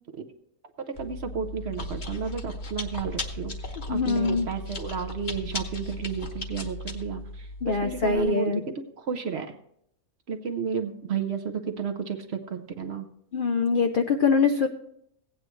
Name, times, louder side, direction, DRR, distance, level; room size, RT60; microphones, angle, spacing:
Chewing mastication, 1.0-8.2, left 2 dB, 35° left, 1.0 m, -36 dB
voice 1, 1.0-9.6 10.3-13.1, right 6 dB, 55° right, 6 dB, 0.8 m, -32 dB
voice 2, 3.9-4.5 7.6-8.6 13.3-14.7, left 4 dB, 70° left, 6 dB, 0.5 m, -23 dB
16.5 x 8.8 x 3.1 m, 0.73 s
omnidirectional pair, 1.6 m